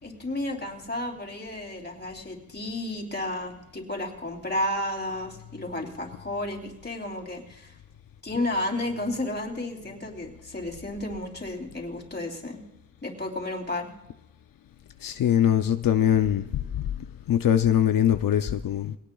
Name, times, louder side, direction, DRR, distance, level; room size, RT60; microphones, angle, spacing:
voice 1, 0.0-7.8 8.2-12.6 13.0-13.9, left 1 dB, 30° left, 1 dB, 3.3 m, -32 dB
voice 2, 15.0-16.4 16.7-16.8 17.3-19.0, left 10 dB, 85° left, 9 dB, 0.6 m, -22 dB
22.0 x 18.0 x 2.3 m, 0.89 s
wide cardioid pair, 75°, 33 cm